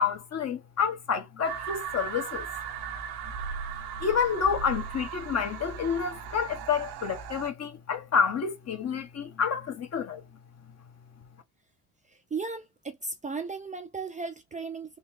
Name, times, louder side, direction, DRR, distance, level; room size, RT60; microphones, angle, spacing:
voice 1, 0.0-2.5 4.0-10.2, left 6 dB, 40° left, 1.2 m, -29 dB
sound 1, 1.4-7.5, right 7 dB, 85° right, 1.0 m, -37 dB
voice 2, 12.1-15.0, right 4 dB, 20° right, 0.5 m, -36 dB
4.0 x 2.3 x 2.6 m
supercardioid pair, 95°, 40 cm